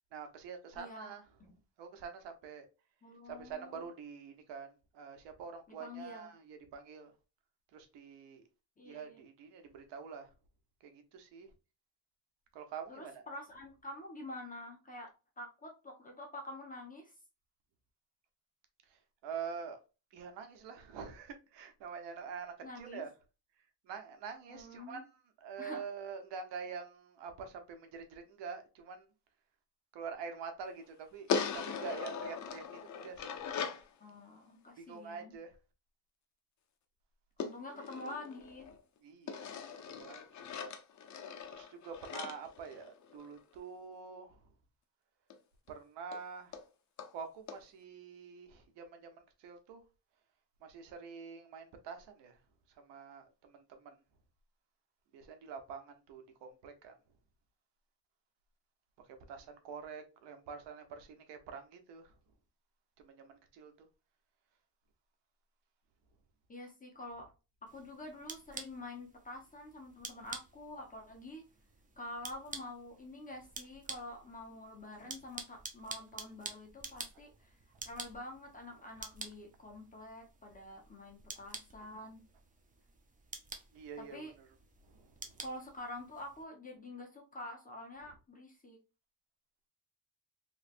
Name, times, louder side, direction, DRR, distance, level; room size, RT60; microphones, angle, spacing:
voice 1, 0.1-1.2 1.8-2.7 3.3-4.7 4.9-7.1 7.7-8.4 8.8-10.3 10.8-11.5 12.5-13.1 19.2-19.8 20.1-23.1 23.9-25.0 25.4-29.0 29.9-33.4 34.8-35.5 39.0-40.2 41.5-44.3 45.7-46.5 47.1-49.1 49.4-49.8 50.6-52.3 52.8-53.9 55.1-56.9 59.3-62.1 63.0-63.7 83.7-84.3, right 6 dB, 85° right, 1.0 m, -46 dB
voice 2, 0.7-1.1 3.0-3.9 5.7-6.3 8.8-9.2 12.9-15.1 15.4-17.1 22.6-23.0 24.5-25.0 25.6-25.9 34.0-35.3 37.4-38.7 66.5-67.3 67.6-71.4 72.0-77.5 77.8-82.2 84.0-84.3 85.4-88.8, left 1 dB, 20° left, 0.9 m, -47 dB
sound 1, 31.3-33.9 37.4-38.8 39.3-43.4 45.3-45.4 45.7-45.8 46.1-46.2 46.5-46.6 47.0-47.1 47.5-47.6, left 6 dB, 45° left, 0.7 m, -40 dB
sound 2, 67.7-86.4, right 4 dB, 20° right, 0.6 m, -50 dB
3.2 x 3.1 x 2.5 m
cardioid pair, 130°, 41 cm